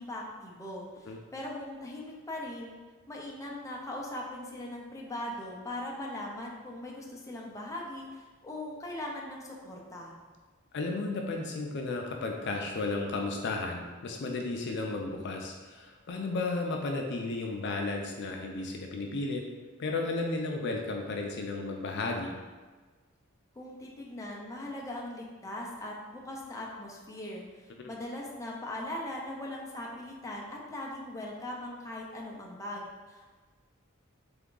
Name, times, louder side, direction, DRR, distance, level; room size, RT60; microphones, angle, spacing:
voice 1, 0.0-2.8 3.1-10.1 23.5-33.3, left 1 dB, 15° left, -2 dB, 0.6 m, -40 dB
voice 2, 10.7-19.4 19.8-22.3 27.8-27.9, left 3 dB, 55° left, 1 dB, 0.5 m, -33 dB
3.5 x 3.5 x 3.8 m, 1.3 s
head